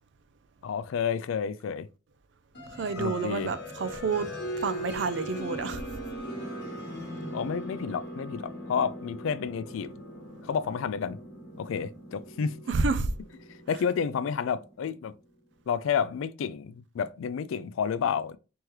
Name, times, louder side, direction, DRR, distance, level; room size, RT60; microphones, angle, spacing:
voice 1, 0.6-1.9 3.0-3.5 7.3-9.9 10.4-11.2 11.6-12.5 13.7-15.1 15.7-18.4, left 7 dB, 75° left, 0.3 m, -30 dB
sound 1, 2.5-15.1, equal, 55° left, 1.1 m, -40 dB
voice 2, 2.8-4.3 4.6-5.8 12.7-13.1, right 4 dB, 60° right, 0.4 m, -29 dB
3.5 x 3.1 x 3.0 m
head